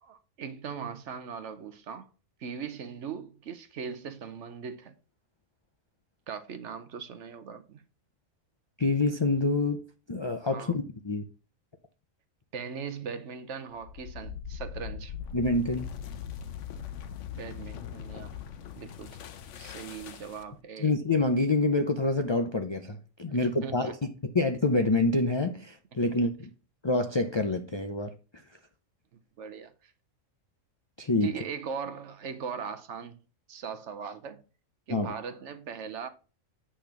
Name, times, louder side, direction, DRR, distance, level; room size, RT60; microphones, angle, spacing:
voice 1, 0.0-2.1 2.4-4.9 6.3-7.8 10.5-10.8 12.5-15.1 17.3-18.4 18.8-19.2 19.5-20.9 23.3-23.9 29.4-29.9 31.2-33.2 33.5-34.4 34.9-36.1, right 6 dB, 65° right, 1.0 m, -39 dB
voice 2, 8.8-9.8 10.1-11.2 15.3-15.9 20.8-26.5 26.8-28.1 31.0-31.3 34.9-35.1, left 2 dB, 45° left, 0.3 m, -27 dB
sound 1, 13.7-20.6, left 8 dB, 70° left, 1.0 m, -40 dB
8.7 x 3.5 x 5.9 m
omnidirectional pair, 1.4 m